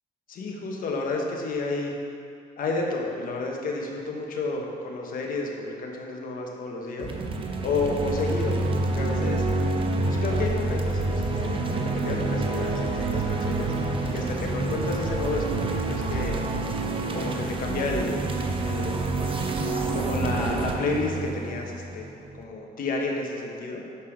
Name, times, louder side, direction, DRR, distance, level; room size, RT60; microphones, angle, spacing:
voice 1, 0.3-1.9 2.6-7.1 7.6-9.5 10.1-13.7 14.1-16.4 17.0-18.2 18.6-19.0 19.9-23.8, left 3 dB, 55° left, 0 dB, 1.3 m, -31 dB
sound 1, 7.0-22.4, right 2 dB, 30° right, 0.7 m, -28 dB
6.9 x 5.4 x 5.0 m, 2.3 s
cardioid pair, 110°, 17 cm